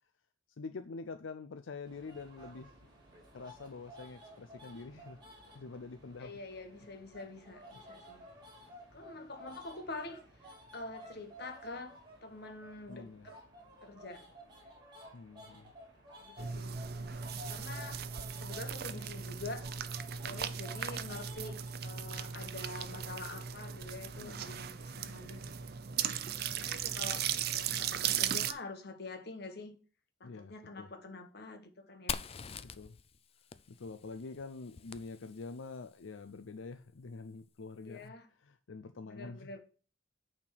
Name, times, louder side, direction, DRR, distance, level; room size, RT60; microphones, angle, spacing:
voice 1, 0.6-2.7 3.3-5.2 5.5-6.3 12.9-13.3 15.1-15.7 20.3-20.4 24.2-24.5 30.2-30.9 32.6-33.0 33.7-38.1 38.4-39.5, left 4 dB, 85° left, 0.5 m, -46 dB
sound 1, 1.8-21.7, equal, 25° right, 2.6 m, -54 dB
voice 2, 6.2-8.3 8.9-13.4 13.8-14.3 16.2-18.1 18.4-19.7 20.2-25.7 26.5-29.8 30.2-32.2 37.8-38.3 39.0-39.6, left 2 dB, 55° left, 1.3 m, -46 dB
sound 2, 16.4-28.5, right 8 dB, 50° right, 0.6 m, -37 dB
Fire, 32.1-35.8, left 7 dB, 30° left, 0.4 m, -44 dB
8.7 x 4.4 x 6.1 m
head